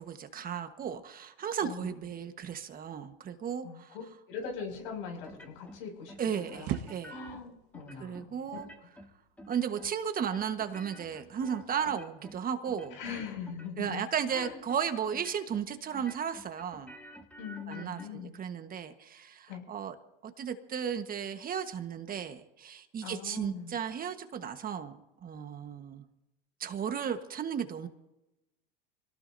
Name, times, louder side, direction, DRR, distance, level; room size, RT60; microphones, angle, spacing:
voice 1, 0.0-3.9 6.2-7.1 8.0-8.7 9.5-13.0 13.8-16.9 17.7-19.9 20.2-26.0 26.6-27.9, right 8 dB, 30° right, 8 dB, 1.4 m, -35 dB
voice 2, 1.6-2.0 3.6-4.0 4.3-6.1 6.5-6.8 7.1-8.6 12.9-14.0 14.3-14.6 17.4-18.3 19.5-19.6 23.0-23.8, left 6 dB, 75° left, 2 dB, 6.5 m, -41 dB
sound 1, 4.4-11.9, right 11 dB, 50° right, 1.6 m, -45 dB
sound 2, 5.2-5.8 6.1-7.4 7.7-8.2 8.5-9.1 9.4-9.9 10.2-12.4 12.6-13.2 13.5-14.0 14.3-14.8 15.1-15.7 15.9-18.1, equal, 5° left, 2.1 m, -50 dB
26.0 x 18.0 x 2.8 m, 0.96 s
hypercardioid pair, 105°, 29 cm